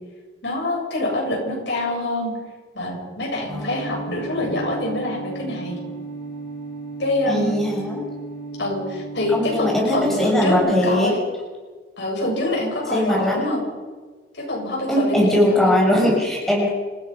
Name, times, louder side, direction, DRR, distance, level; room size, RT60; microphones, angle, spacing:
voice 1, 0.4-2.3 2.7-5.8 7.0-7.6 8.6-11.2 12.0-13.6 14.3-15.8, left 1 dB, 80° left, -1 dB, 7.8 m, -25 dB
sound 1, 3.5-10.6, right 3 dB, 15° left, 6.1 m, -34 dB
voice 2, 7.3-8.1 9.3-11.1 12.9-13.6 14.9-16.7, left 1 dB, ahead, -2 dB, 6.0 m, -20 dB
28.0 x 16.0 x 5.9 m, 1.4 s
head